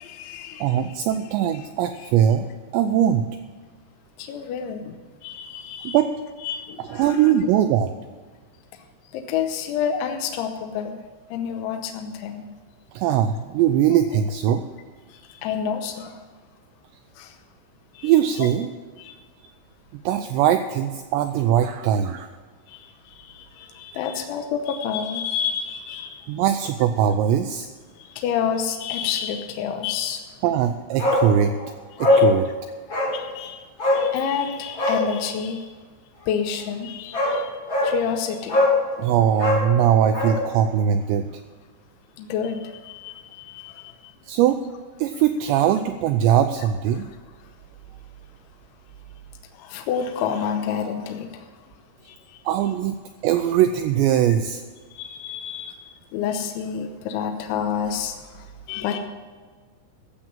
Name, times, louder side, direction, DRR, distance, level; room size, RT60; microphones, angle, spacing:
voice 1, 0.0-1.0 2.0-2.1 4.2-6.0 6.4-7.3 9.1-11.0 11.3-12.4 13.9-14.0 15.1-16.2 17.2-17.4 17.9-18.1 18.4-18.5 19.0-19.2 22.7-26.4 28.0-30.2 32.1-32.3 33.1-35.8 36.3-37.5 37.8-38.7 42.2-44.1 46.9-47.0 49.5-51.7 52.0-52.4 54.9-59.0, left 7 dB, 80° left, 4 dB, 3.2 m, -29 dB
voice 2, 0.6-2.5 2.7-3.3 5.8-6.1 6.9-7.9 12.9-14.6 18.0-18.7 20.1-22.3 26.3-27.7 30.4-31.5 32.0-32.5 39.0-41.3 44.3-44.6 45.0-47.1 52.5-53.0 53.2-54.6, right 10 dB, 85° right, 8 dB, 2.5 m, -20 dB
Bark, 31.0-31.3 31.6-31.7 32.0-32.3 32.9-33.2 33.8-34.1 34.7-35.0 36.6-36.7 37.1-37.4 37.7-37.9 38.5-38.8 39.3-40.4 40.7-40.8, left 2 dB, 25° left, 3.9 m, -20 dB
15.0 x 7.5 x 7.3 m, 1.5 s
omnidirectional pair, 5.6 m